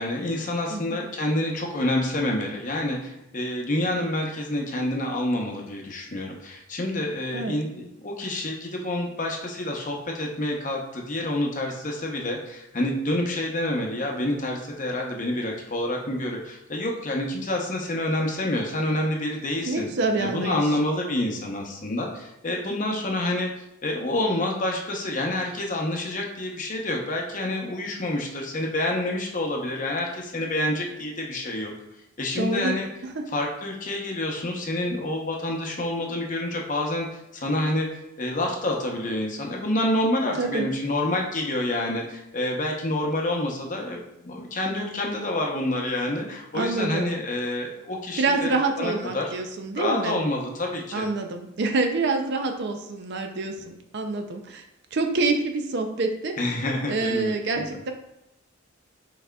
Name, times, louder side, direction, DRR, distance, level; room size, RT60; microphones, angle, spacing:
voice 1, 0.0-19.9 20.2-31.7 32.2-32.9 33.3-37.1 37.3-37.9 38.2-48.5 48.8-49.3 49.8-51.1 56.4-57.7, left 1 dB, 35° left, 0 dB, 0.7 m, -28 dB
voice 2, 19.7-20.6 32.4-32.8 33.0-33.3 40.4-40.7 46.5-47.1 48.2-50.2 50.9-54.6 54.9-56.4 56.9-57.9, right 3 dB, 50° right, 5 dB, 0.4 m, -26 dB
5.8 x 4.1 x 2.2 m, 0.87 s
head